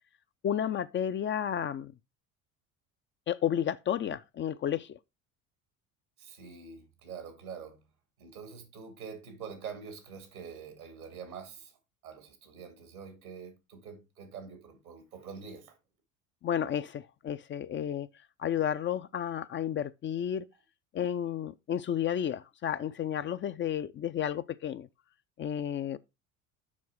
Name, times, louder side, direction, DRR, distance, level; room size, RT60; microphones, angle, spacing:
voice 1, 0.4-1.9 3.3-5.0 16.4-18.1 18.4-20.4 20.9-24.9 25.4-26.0, left 9 dB, 30° left, 0.5 m, -32 dB
voice 2, 6.2-7.9 8.2-11.8 12.0-15.8, right 6 dB, 85° right, 2.2 m, -45 dB
7.3 x 5.3 x 4.6 m
hypercardioid pair, 65°, 42 cm